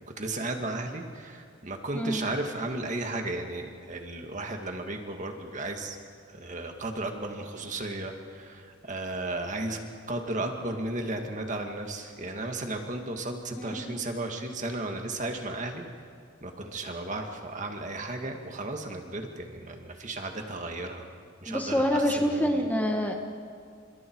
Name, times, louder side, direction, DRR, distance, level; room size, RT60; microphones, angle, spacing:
voice 1, 0.2-6.0 6.3-9.8 10.1-15.8 16.4-21.1 21.4-22.7, right 2 dB, 35° right, 4 dB, 2.0 m, -34 dB
voice 2, 13.6-14.0 21.5-23.3, equal, 10° left, 2 dB, 1.5 m, -27 dB
30.0 x 27.0 x 4.7 m, 2.2 s
head